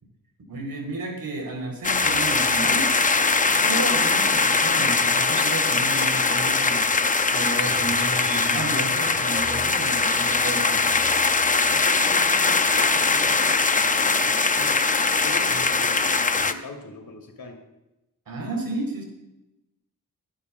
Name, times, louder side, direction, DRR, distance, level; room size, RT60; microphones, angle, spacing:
voice 1, 0.5-3.0 3.6-6.9 7.3-11.0 15.5-15.6 18.3-19.0, right 2 dB, 80° right, 1 dB, 4.4 m, -32 dB
sound 1, 1.8-16.5, left 4 dB, 25° left, 0.6 m, -21 dB
sound 2, 5.3-6.3 7.4-8.6, right 1 dB, 20° right, 1.8 m, -39 dB
voice 2, 11.7-14.8 15.2-17.6, left 2 dB, 85° left, 3 dB, 2.9 m, -41 dB
24.0 x 11.0 x 2.5 m, 0.93 s
wide cardioid pair, 170°, 35 cm